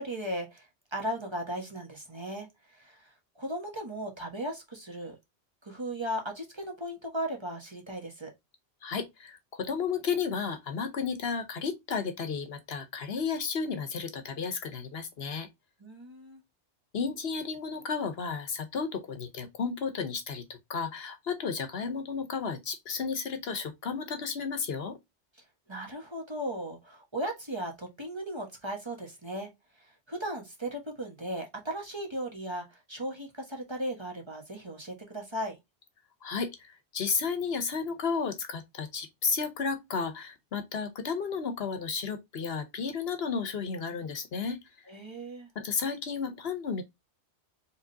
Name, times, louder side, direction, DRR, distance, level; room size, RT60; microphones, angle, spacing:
voice 1, 0.0-5.1 5.6-8.3 15.8-16.4 25.7-29.5 29.8-35.6 44.9-45.5, right 1 dB, 25° right, 1.4 m, -37 dB
voice 2, 8.8-15.5 16.9-25.0 36.2-44.6 45.6-46.8, left 5 dB, 65° left, 1.0 m, -33 dB
4.8 x 3.4 x 2.7 m
omnidirectional pair, 1.1 m